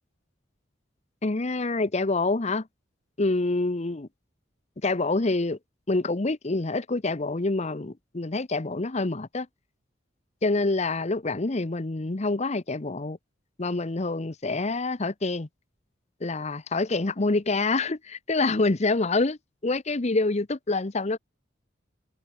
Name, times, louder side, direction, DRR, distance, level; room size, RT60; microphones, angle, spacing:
voice 1, 1.2-2.7 3.2-4.1 4.8-5.6 5.9-9.5 10.4-13.2 13.6-15.5 16.2-21.2, left 3 dB, 35° left, 0.8 m, -26 dB
head